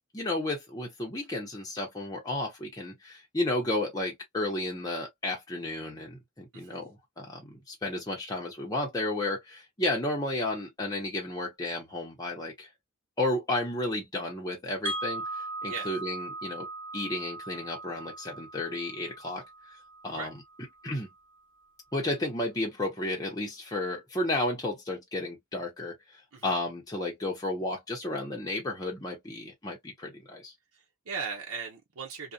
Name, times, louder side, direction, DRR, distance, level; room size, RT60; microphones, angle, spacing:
voice 1, 0.1-12.7 13.2-16.7 16.9-19.4 20.0-20.3 20.8-21.1 21.9-30.5, left 2 dB, 15° left, 0.7 m, -32 dB
Wind chime, 14.9-20.8, right 2 dB, 60° right, 1.2 m, -39 dB
voice 2, 30.7-32.3, right 5 dB, 80° right, 0.8 m, -38 dB
2.6 x 2.2 x 2.3 m
head